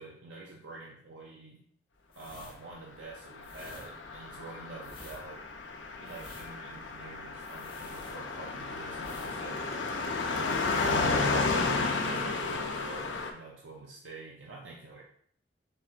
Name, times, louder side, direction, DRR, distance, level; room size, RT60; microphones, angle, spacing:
voice 1, 0.0-1.7 2.2-5.4 6.0-9.8 10.3-11.0 11.2-15.0, right 3 dB, 85° right, -2 dB, 0.6 m, -47 dB
sound 1, 2.1-8.6 9.0-9.4 9.6-9.9, left 2 dB, 30° left, 1.0 m, -51 dB
Car passing by, 3.4-13.3, left 3 dB, 85° left, 0.6 m, -32 dB
4.2 x 2.5 x 4.3 m, 0.64 s
head